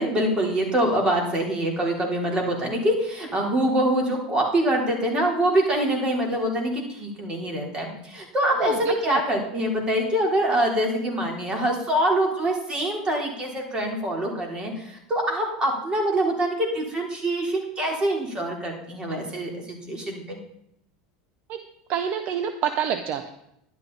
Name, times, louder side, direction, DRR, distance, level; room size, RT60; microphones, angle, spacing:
voice 1, 0.0-20.4, right 1 dB, 25° right, 1 dB, 3.8 m, -25 dB
voice 2, 8.6-9.2 21.5-23.3, right 8 dB, 50° right, 9 dB, 0.9 m, -28 dB
11.5 x 11.5 x 4.1 m, 0.77 s
supercardioid pair, 115°, 3 cm